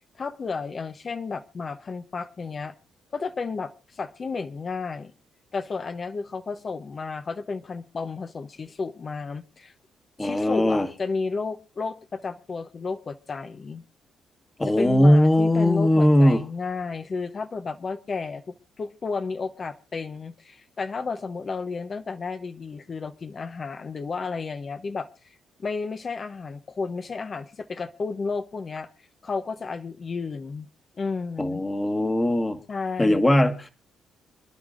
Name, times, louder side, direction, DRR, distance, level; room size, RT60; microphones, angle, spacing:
voice 1, 0.2-2.7 3.1-5.1 5.5-9.7 10.2-13.8 14.7-25.1 25.6-28.9 29.2-30.7 31.0-31.6 32.7-33.2, left 4 dB, 40° left, 9 dB, 0.8 m, -32 dB
voice 2, 10.2-10.9 14.6-16.4 31.4-32.6 33.0-33.7, left 1 dB, 15° left, 6 dB, 1.5 m, -19 dB
27.0 x 10.5 x 2.5 m, 0.31 s
cardioid pair, 90°, 0 cm